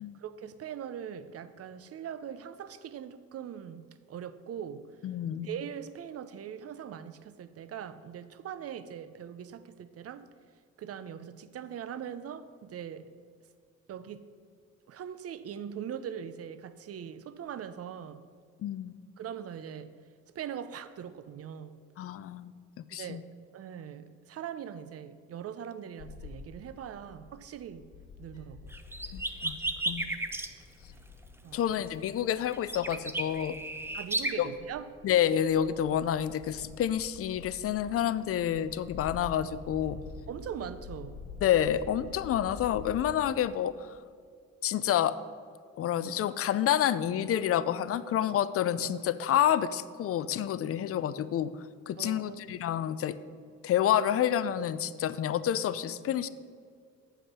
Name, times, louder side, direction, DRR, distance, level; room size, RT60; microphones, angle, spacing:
voice 1, 0.0-4.9 5.4-10.3 10.8-13.1 13.9-14.3 14.9-18.2 19.2-19.9 20.3-21.8 22.9-23.2 23.5-27.9 28.2-28.8 31.4-31.6 33.9-34.9 40.3-41.2 52.0-52.4, right 8 dB, 50° right, 0.6 m, -41 dB
voice 2, 5.0-5.5 18.6-18.9 22.0-22.5 22.9-23.2 29.1-29.6 29.9-30.1 31.5-33.6 34.4-34.5 35.0-40.0 41.4-43.8 44.6-45.2 45.8-51.5 51.9-53.1 53.6-56.3, left 10 dB, 50° left, 0.4 m, -28 dB
Bird / Wind, 26.0-43.0, left 4 dB, 75° left, 1.9 m, -48 dB
sound 1, 28.7-30.5 32.5-34.3, right 2 dB, 10° right, 0.6 m, -33 dB
7.2 x 5.6 x 6.1 m
cardioid pair, 90°, 30 cm